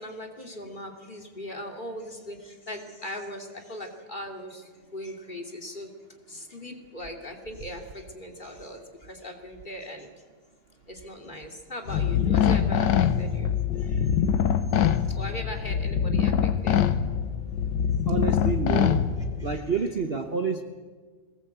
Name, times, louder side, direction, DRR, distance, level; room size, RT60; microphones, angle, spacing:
voice 1, 0.0-5.9 6.3-10.1 10.9-14.2 15.1-16.9 19.4-19.6, left 1 dB, 25° left, 3 dB, 2.7 m, -39 dB
sound 1, 11.9-19.6, left 8 dB, 70° left, 1.5 m, -24 dB
voice 2, 18.1-19.0 19.4-20.6, right 5 dB, 40° right, 7 dB, 1.1 m, -28 dB
22.0 x 19.5 x 8.1 m, 1.5 s
omnidirectional pair, 2.0 m